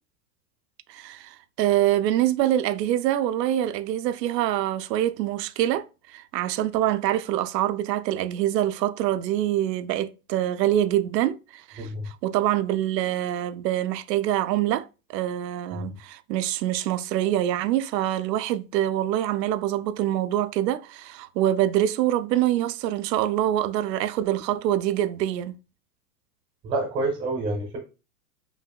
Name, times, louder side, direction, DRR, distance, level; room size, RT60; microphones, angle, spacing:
voice 1, 0.9-25.5, right 12 dB, 90° right, 0.6 m, -25 dB
voice 2, 26.6-27.8, right 2 dB, 15° right, 0.6 m, -28 dB
5.3 x 2.7 x 2.3 m
supercardioid pair, 165°, 48 cm